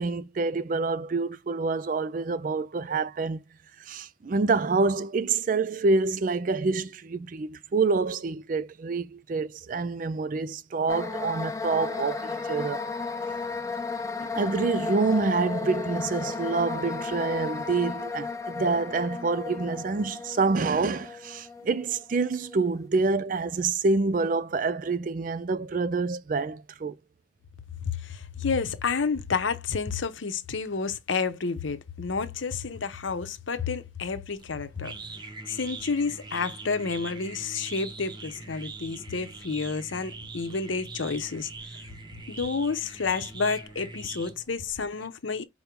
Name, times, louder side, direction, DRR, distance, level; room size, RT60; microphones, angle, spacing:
voice 1, 0.0-3.4 3.8-12.9 14.2-27.0, right 3 dB, 45° right, 0.4 m, -27 dB
sound 1, 10.9-22.8, left 4 dB, 15° left, 0.6 m, -34 dB
voice 2, 28.0-35.0 35.5-41.5 42.3-45.4, left 5 dB, 75° left, 0.7 m, -30 dB
sound 2, 34.3-44.7, right 3 dB, 20° right, 0.8 m, -42 dB
5.2 x 2.1 x 4.5 m
head